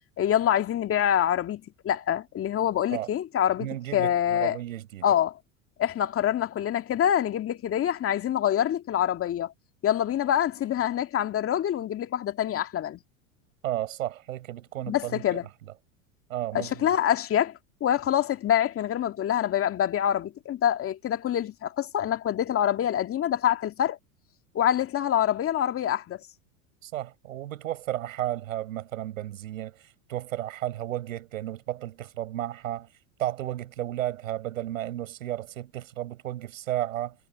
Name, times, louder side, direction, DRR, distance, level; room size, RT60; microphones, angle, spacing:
voice 1, 0.2-4.6 5.0-5.4 5.8-9.5 9.8-13.0 14.9-15.4 16.5-17.5 17.8-24.0 24.5-26.2, left 10 dB, 35° left, 2.3 m, -26 dB
voice 2, 3.6-5.1 13.6-15.4 16.3-16.9 26.8-29.8 30.1-32.9 33.2-37.2, right 13 dB, 75° right, 5.9 m, -33 dB
hypercardioid pair, 95°, 40 cm